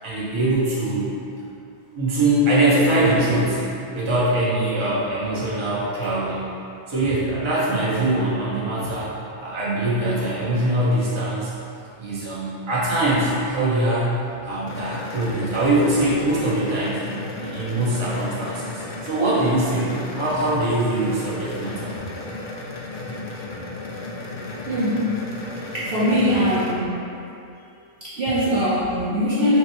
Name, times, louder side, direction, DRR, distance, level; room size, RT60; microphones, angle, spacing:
voice 1, 0.0-1.1 1.9-3.6 3.9-6.4 6.9-9.1 9.4-11.5 12.0-14.2 14.4-17.0 17.4-21.9, right 1 dB, 25° right, -9 dB, 0.8 m, -22 dB
sound 1, 14.7-26.7, left 3 dB, 90° left, 0.3 m, -34 dB
voice 2, 24.7-25.1 25.7-26.9 28.0-29.6, equal, 55° right, -10 dB, 0.9 m, -21 dB
4.6 x 2.1 x 4.3 m, 2.6 s
omnidirectional pair, 1.3 m